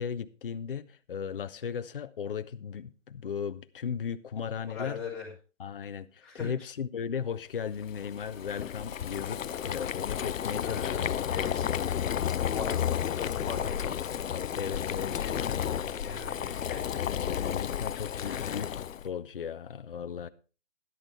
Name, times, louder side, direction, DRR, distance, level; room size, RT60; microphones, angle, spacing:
voice 1, 0.0-5.0 5.6-11.1 11.6-11.8 14.2-15.1 15.4-15.6 17.2-20.3, left 7 dB, 45° left, 0.6 m, -36 dB
voice 2, 4.6-5.3 6.2-6.5 10.6-11.1 11.3-11.9 12.5-14.0 15.1-17.0 18.2-18.5, left 5 dB, ahead, 3.7 m, -40 dB
Boiling, 7.8-19.1, left 9 dB, 85° left, 0.5 m, -32 dB
12.5 x 11.0 x 3.4 m
figure-of-eight pair, 150°, 38 cm